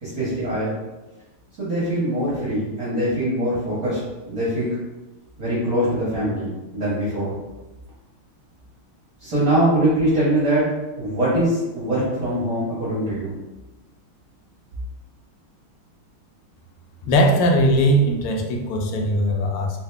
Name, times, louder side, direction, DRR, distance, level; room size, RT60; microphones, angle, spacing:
voice 1, 0.0-0.7 1.6-4.0 4.3-4.7 5.4-7.4 9.2-13.3, right 1 dB, 50° right, -9 dB, 1.4 m, -23 dB
voice 2, 17.1-19.8, equal, 90° left, 2 dB, 1.5 m, -19 dB
3.7 x 2.7 x 3.3 m, 1.1 s
omnidirectional pair, 2.3 m